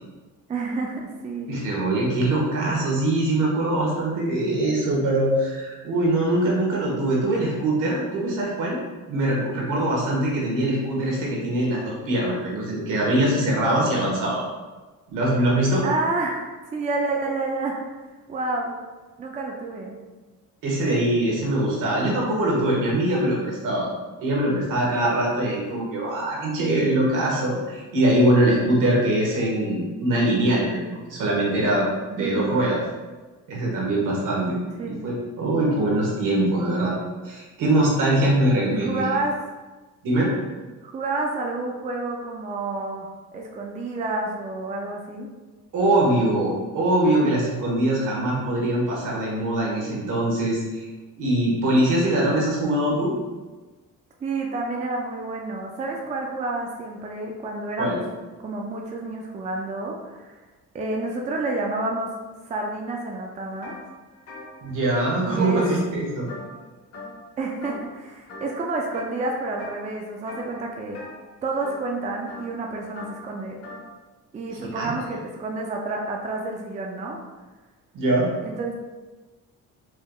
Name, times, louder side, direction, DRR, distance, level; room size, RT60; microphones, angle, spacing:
voice 1, 0.5-1.5 15.8-17.8 18.3-18.8 19.2-20.0 32.2-32.6 34.8-35.0 38.7-39.3 40.8-45.3 54.2-58.0 58.4-60.4 60.7-62.1 62.4-63.7 65.3-65.6 67.4-71.0 71.4-73.6 74.3-77.2 78.4-78.7, right 2 dB, 20° right, 0 dB, 0.4 m, -29 dB
voice 2, 1.5-8.8 9.1-14.4 15.1-15.8 20.6-23.9 24.2-32.8 33.5-34.6 34.9-37.0 37.2-39.0 40.0-40.3 45.7-50.9 51.2-53.1 57.8-58.0 64.6-66.3 74.7-74.9 77.9-78.3, right 1 dB, 70° right, -3 dB, 1.4 m, -22 dB
sound 1, 63.6-63.8 64.1-66.7 66.9-67.3 67.6-68.0 68.3-69.1 69.6-69.9 70.2-73.9, left 2 dB, 45° left, 1.1 m, -41 dB
4.7 x 3.2 x 2.3 m, 1.3 s
cardioid pair, 130°, 32 cm